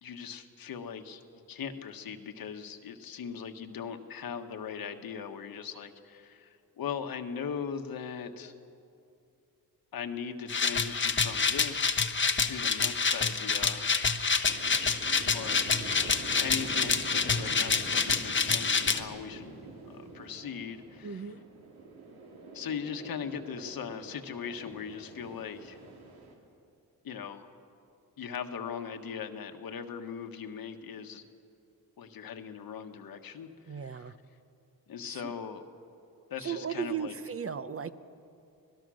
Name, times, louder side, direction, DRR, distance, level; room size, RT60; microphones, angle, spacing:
voice 1, 0.0-1.2 1.5-8.5 9.9-12.0 12.4-13.9 15.3-15.9 16.4-19.6 19.9-21.3 22.5-25.8 27.0-27.5 28.2-31.2 32.0-34.1 34.9-35.6 36.3-37.2, left 7 dB, 70° left, 6 dB, 1.5 m, -39 dB
sound 1, 10.5-19.0, left 5 dB, 30° left, 1.0 m, -27 dB
sound 2, 13.4-26.3, right 3 dB, 90° right, 3.0 m, -46 dB
voice 2, 21.0-21.4 33.7-34.1 35.0-35.3 36.4-37.9, right 7 dB, 40° right, 12 dB, 0.8 m, -36 dB
25.5 x 19.0 x 6.4 m, 2.6 s
cardioid pair, 105°, 36 cm